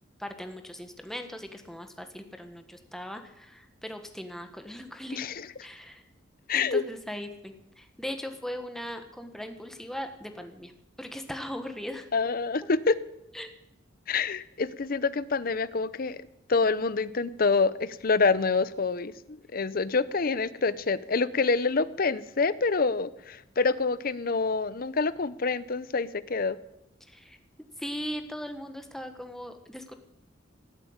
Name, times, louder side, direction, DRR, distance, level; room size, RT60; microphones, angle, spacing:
voice 1, 0.2-6.0 6.5-10.7 11.0-12.1 13.3-13.5 27.0-27.4 27.8-29.9, equal, ahead, 6 dB, 1.4 m, -39 dB
voice 2, 5.1-5.5 6.5-6.8 12.1-13.0 14.1-16.2 16.5-26.6, left 4 dB, 50° left, 16 dB, 0.7 m, -27 dB
17.0 x 8.1 x 8.8 m, 0.84 s
head